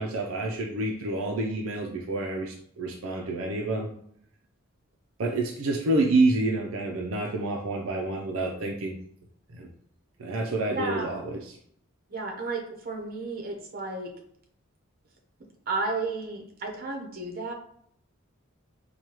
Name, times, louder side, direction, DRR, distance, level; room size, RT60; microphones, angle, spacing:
voice 1, 0.0-4.0 5.2-9.0 9.5-9.7 10.2-11.6, right 2 dB, 80° right, 1 dB, 0.5 m, -28 dB
voice 2, 10.7-11.2 12.1-14.1 15.7-17.5, right 3 dB, 45° right, 1 dB, 0.9 m, -33 dB
4.7 x 2.3 x 3.0 m, 0.67 s
head